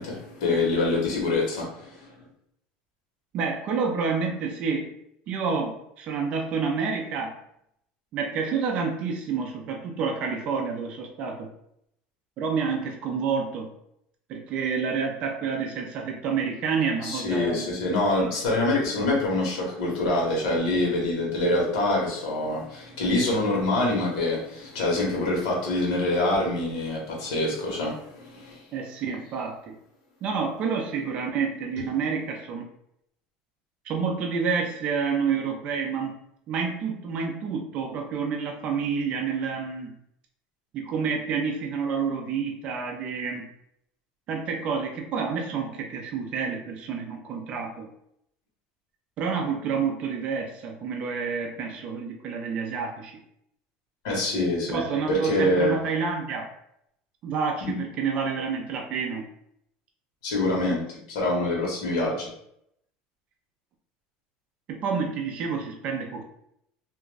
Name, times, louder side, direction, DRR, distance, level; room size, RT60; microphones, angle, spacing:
voice 1, 0.0-2.1 17.0-28.6 31.8-31.9 54.0-54.8 55.1-55.7 57.6-57.8 60.2-62.3, left 2 dB, 80° left, -2 dB, 1.1 m, -25 dB
voice 2, 3.3-4.9 5.3-7.4 8.1-11.5 12.4-13.7 14.3-17.6 18.2-18.3 28.7-29.7 30.2-32.7 33.9-36.1 36.5-39.9 40.7-43.4 44.3-47.9 49.2-53.1 54.7-56.5 57.2-59.3 64.7-66.2, right 5 dB, 35° right, 2 dB, 0.4 m, -29 dB
2.4 x 2.2 x 3.1 m, 0.76 s
cardioid pair, 165°, 3 cm